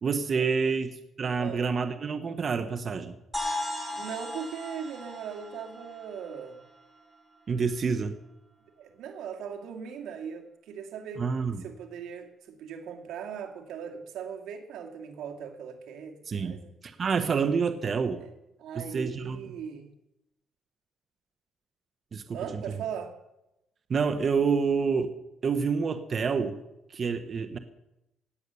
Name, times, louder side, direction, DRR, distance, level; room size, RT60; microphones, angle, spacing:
voice 1, 0.0-3.2 7.5-8.2 11.2-11.6 16.3-16.6 16.8-18.2 18.7-19.5 22.1-22.4 23.9-25.1 25.4-26.6 26.9-27.6, right 5 dB, 45° right, 9 dB, 1.2 m, -28 dB
sound 1, 3.3-7.1, left 1 dB, 5° right, 6.6 m, -37 dB
voice 2, 3.9-6.6 8.8-11.2 11.6-16.7 18.2-18.3 18.6-19.9 22.3-23.1, right 7 dB, 85° right, 4 dB, 2.3 m, -39 dB
18.5 x 8.3 x 7.0 m, 0.88 s
cardioid pair, 90°, 0 cm